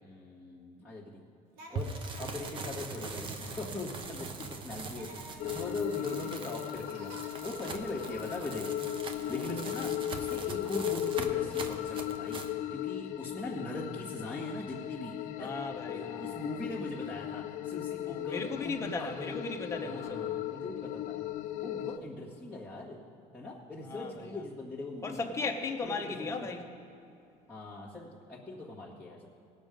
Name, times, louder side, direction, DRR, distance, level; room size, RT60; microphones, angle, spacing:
voice 1, 0.0-1.2 1.7-7.1 7.4-8.8 9.3-15.5 15.9-19.4 19.8-21.2 21.6-23.0 23.3-25.5 25.8-26.5 27.5-29.3, left 2 dB, 10° right, -7 dB, 1.7 m, -41 dB
sound 1, 1.5-8.4, right 2 dB, 75° right, 1.3 m, -53 dB
sound 2, 1.7-12.5, right 4 dB, 35° right, 0.9 m, -42 dB
sound 3, 5.4-22.0, left 13 dB, 60° left, 0.4 m, -37 dB
voice 2, 15.4-16.6 18.1-20.2 23.8-24.4 25.0-26.7, left 3 dB, 20° left, 2 dB, 1.0 m, -37 dB
18.0 x 6.3 x 5.2 m, 2.6 s
cardioid pair, 145°, 15 cm